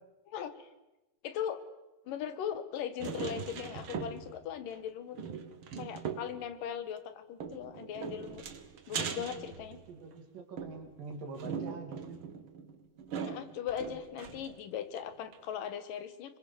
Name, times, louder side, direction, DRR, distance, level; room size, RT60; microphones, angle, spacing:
voice 1, 0.3-0.7 1.2-1.6 2.1-5.2 5.8-8.4 8.9-9.8 13.2-16.4, left 9 dB, 70° left, 12 dB, 2.8 m, -39 dB
sound 1, 3.0-4.5 4.7-4.8 5.2-6.4 7.4-10.1 10.6-14.6 15.0-15.1 15.3-15.4, right 6 dB, 50° right, 1.7 m, -40 dB
voice 2, 8.9-9.5 9.9-12.2, right 4 dB, 65° right, 5 dB, 4.4 m, -45 dB
26.5 x 23.0 x 7.1 m, 1.0 s
omnidirectional pair, 4.2 m